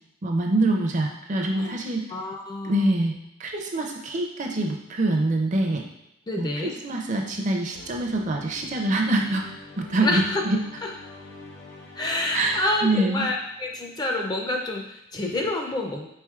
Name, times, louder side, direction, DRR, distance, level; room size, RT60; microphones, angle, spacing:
voice 1, 0.2-2.1 2.6-3.1 3.4-5.8 6.4-9.4 9.8-10.6 12.3-13.3, right 2 dB, 40° right, 2 dB, 0.4 m, -25 dB
voice 2, 2.1-2.9 6.3-6.8 10.0-10.4 10.8-10.9 12.0-16.1, left 2 dB, 20° left, 1 dB, 0.4 m, -28 dB
sound 1, 7.7-14.2, left 2 dB, 65° left, 0.7 m, -46 dB
4.4 x 3.8 x 2.3 m, 0.84 s
head